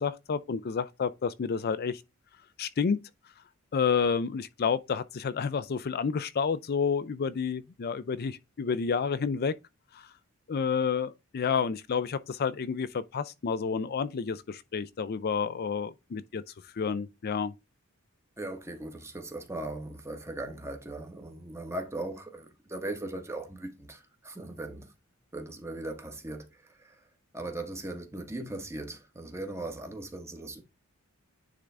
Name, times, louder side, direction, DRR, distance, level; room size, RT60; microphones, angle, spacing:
voice 1, 0.0-2.0 2.6-3.0 3.7-9.6 9.9-10.1 10.5-16.4 16.7-17.5, left 6 dB, 50° left, 0.4 m, -30 dB
voice 2, 18.4-24.9 25.3-27.0 27.3-30.6, right 2 dB, 15° right, 1.3 m, -39 dB
9.9 x 3.8 x 3.4 m
head